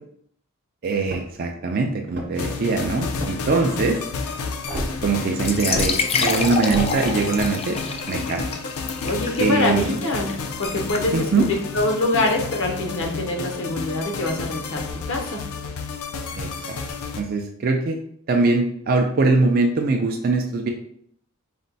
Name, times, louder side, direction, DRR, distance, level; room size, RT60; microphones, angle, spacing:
voice 1, 0.8-4.0 5.0-7.8 8.1-8.4 9.4-10.0 11.1-11.5 16.4-16.8 17.2-18.0 18.3-20.7, right 3 dB, 45° right, 2 dB, 0.4 m, -22 dB
sound 1, 1.0-1.4 2.0-2.5 3.1-3.6 4.7-4.9 5.7-5.9 6.7-6.9, right 1 dB, 60° right, 0.8 m, -31 dB
sound 2, 2.3-17.2, left 4 dB, 90° left, 0.5 m, -31 dB
sound 3, 5.4-13.0, left 5 dB, 30° left, 0.3 m, -29 dB
voice 2, 9.0-15.5, left 2 dB, 65° left, 2 dB, 0.8 m, -25 dB
4.2 x 2.2 x 3.9 m, 0.65 s
head